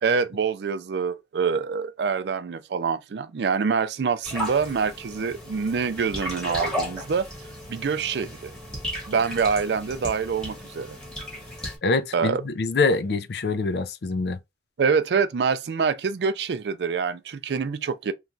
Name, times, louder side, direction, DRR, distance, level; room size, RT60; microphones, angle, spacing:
voice 1, 0.0-7.3 7.7-8.5 9.1-11.0 12.1-12.4 14.8-18.1, right 5 dB, 65° right, 0.4 m, -25 dB
sound 1, 4.2-11.8, equal, 5° left, 1.1 m, -35 dB
voice 2, 11.8-14.4, left 3 dB, 65° left, 0.4 m, -25 dB
3.1 x 2.2 x 2.5 m
head